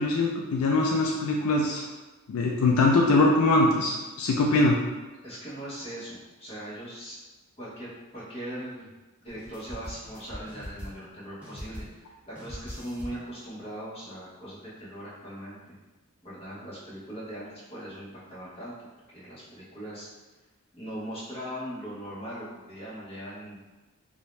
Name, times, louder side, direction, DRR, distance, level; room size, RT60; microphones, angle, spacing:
voice 1, 0.0-1.9 2.3-4.8, left 2 dB, 70° left, 0 dB, 0.3 m, -22 dB
voice 2, 5.2-7.2 7.6-8.9 9.2-15.7 16.2-18.7 19.1-20.1 20.7-23.6, equal, 30° left, -9 dB, 0.9 m, -40 dB
sound 1, 9.3-11.1 11.4-12.1 12.3-13.3, equal, 5° right, 0.5 m, -42 dB
2.6 x 2.1 x 3.1 m, 1.2 s
head